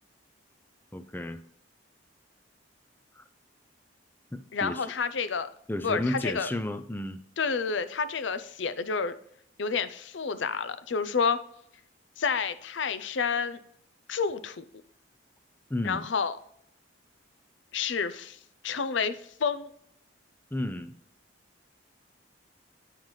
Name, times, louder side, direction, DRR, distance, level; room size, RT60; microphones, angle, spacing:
voice 1, 0.9-1.4 3.2-3.3 4.3-4.9 5.7-7.2 15.7-16.0 20.5-20.9, left 1 dB, 10° left, 0.5 m, -32 dB
voice 2, 4.5-5.5 5.8-6.5 7.4-9.1 9.6-11.4 12.2-13.6 14.1-14.6 15.8-16.4 17.7-18.4 18.6-19.7, left 5 dB, 65° left, 0.6 m, -29 dB
8.7 x 5.7 x 3.2 m
head